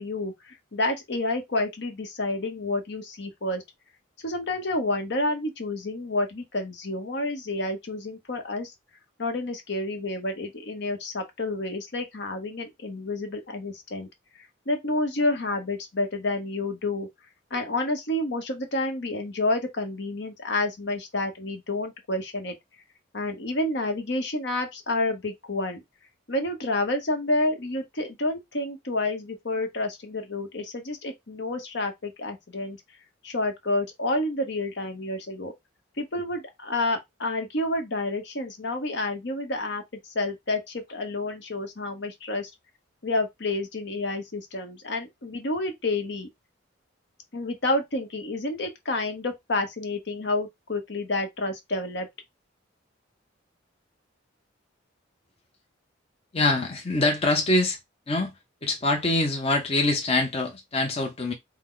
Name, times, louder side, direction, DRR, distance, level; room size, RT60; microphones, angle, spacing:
voice 1, 0.0-3.6 4.2-8.7 9.2-14.1 14.4-17.1 17.5-22.5 23.1-25.8 26.3-32.8 33.2-35.5 36.0-39.8 40.1-42.5 43.0-46.3 47.3-52.1, left 2 dB, 60° left, 1.0 m, -29 dB
voice 2, 56.3-57.8 58.1-58.3 58.6-61.3, left 2 dB, 30° left, 0.7 m, -24 dB
4.6 x 2.0 x 3.8 m
head